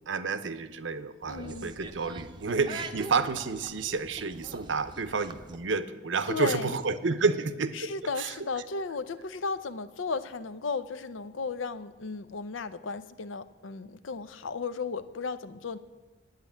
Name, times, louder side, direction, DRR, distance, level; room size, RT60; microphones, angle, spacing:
voice 1, 0.1-7.9 8.2-8.3, right 4 dB, 75° right, 13 dB, 0.7 m, -30 dB
sound 1, 1.2-5.6, right 3 dB, 25° right, 0.6 m, -43 dB
voice 2, 1.3-1.7 2.4-2.8 6.3-6.7 7.7-15.8, left 4 dB, 90° left, 13 dB, 0.6 m, -35 dB
9.6 x 8.3 x 8.7 m, 1.2 s
head